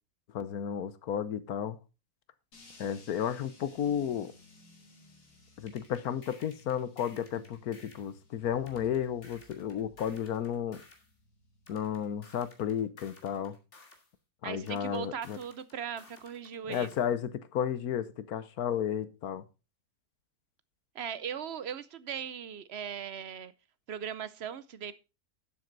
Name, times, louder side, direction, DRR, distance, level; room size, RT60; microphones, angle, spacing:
voice 1, 0.3-1.8 2.8-4.3 5.6-10.8 11.7-13.5 14.4-15.4 16.7-19.4, left 9 dB, 70° left, 1.3 m, -33 dB
sound 1, 2.5-12.7, left 2 dB, 85° left, 3.4 m, -59 dB
sound 2, 5.7-8.1 8.7-11.1 11.7-14.1 14.7-17.1, left 3 dB, 45° left, 2.7 m, -56 dB
voice 2, 14.4-17.1 20.9-23.5 23.9-25.0, right 8 dB, 60° right, 0.7 m, -39 dB
12.0 x 7.8 x 3.9 m
omnidirectional pair, 1.7 m